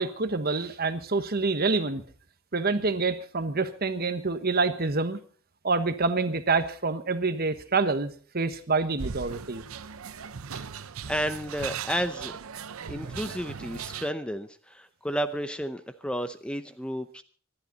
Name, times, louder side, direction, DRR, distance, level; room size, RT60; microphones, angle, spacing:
voice 1, 0.0-2.0 2.5-5.2 5.6-9.6, right 3 dB, 45° right, 10 dB, 1.3 m, -27 dB
sound 1, 9.0-14.1, right 6 dB, 90° right, 0.7 m, -38 dB
voice 2, 11.1-12.4 12.9-17.2, equal, 5° left, 10 dB, 0.7 m, -32 dB
25.0 x 11.5 x 4.0 m, 0.43 s
head